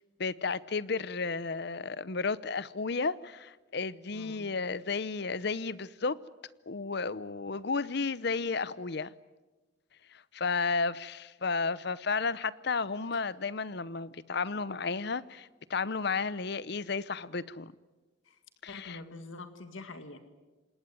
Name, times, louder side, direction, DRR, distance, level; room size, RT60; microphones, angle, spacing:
voice 1, 0.2-6.2 6.7-9.1 10.3-17.7 18.6-19.0, left 4 dB, 55° left, 0.8 m, -33 dB
voice 2, 4.1-4.4 13.1-13.2 18.3-18.4 18.7-20.2, left 2 dB, 85° left, 2.0 m, -45 dB
27.0 x 20.0 x 9.2 m
head